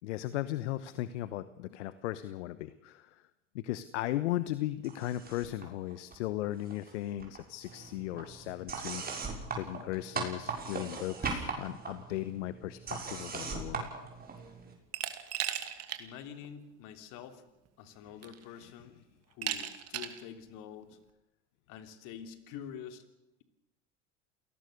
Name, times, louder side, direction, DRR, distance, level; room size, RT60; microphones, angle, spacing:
voice 1, 0.0-3.2 3.5-13.9 18.6-18.7, left 14 dB, 75° left, 14 dB, 1.1 m, -37 dB
sound 1, 4.8-5.6 5.9-6.9 7.2-14.7, right 4 dB, 25° right, 6.6 m, -39 dB
Glass, 14.9-16.0 16.4-16.5 17.7-17.8 18.2-18.6 19.4-20.2, right 10 dB, 45° right, 2.6 m, -36 dB
voice 2, 16.0-17.5 17.8-19.0 19.3-21.0 21.7-23.0, left 8 dB, 60° left, 9 dB, 3.2 m, -47 dB
28.0 x 18.5 x 6.7 m, 0.95 s
hypercardioid pair, 90°, 36 cm